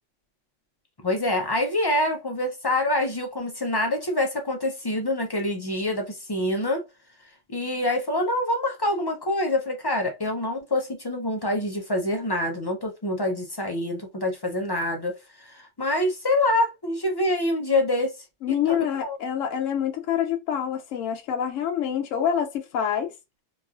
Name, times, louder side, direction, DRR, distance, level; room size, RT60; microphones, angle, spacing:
voice 1, 1.0-6.8 7.5-15.1 15.4-18.1 18.5-18.8 19.0-19.2, left 1 dB, 35° left, 0.4 m, -26 dB
voice 2, 18.4-23.1, left 9 dB, 80° left, 1.0 m, -26 dB
3.0 x 2.4 x 2.4 m
omnidirectional pair, 1.3 m